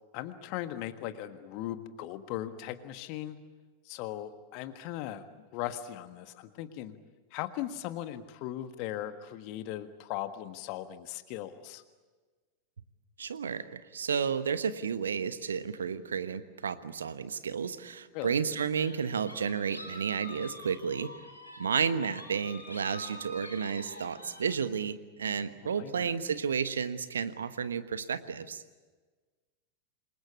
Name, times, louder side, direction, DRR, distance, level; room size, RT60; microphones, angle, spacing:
voice 1, 0.1-3.4 3.8-5.3 5.5-6.9 7.3-11.8 18.1-18.4 25.6-26.1, left 13 dB, 45° left, 10 dB, 1.5 m, -38 dB
voice 2, 13.2-21.1 21.6-28.6, right 6 dB, 70° right, 13 dB, 1.3 m, -32 dB
sound 1, 18.7-24.6, left 1 dB, 90° left, 5.2 m, -46 dB
27.5 x 22.5 x 8.5 m, 1.4 s
figure-of-eight pair, 90°, 0 cm